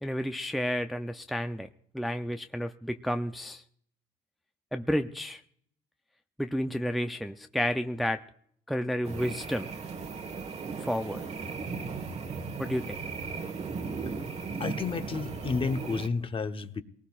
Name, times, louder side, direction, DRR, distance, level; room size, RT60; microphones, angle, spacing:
voice 1, 0.0-1.7 1.9-3.6 4.7-5.4 6.4-8.2 8.7-9.7 10.8-11.2 12.6-13.0, equal, ahead, 7 dB, 0.5 m, -31 dB
sound 1, 9.0-16.1, right 4 dB, 40° right, 1.3 m, -37 dB
voice 2, 14.6-16.8, left 4 dB, 30° left, 9 dB, 0.9 m, -31 dB
22.5 x 19.0 x 2.4 m, 0.66 s
cardioid pair, 110°, 17 cm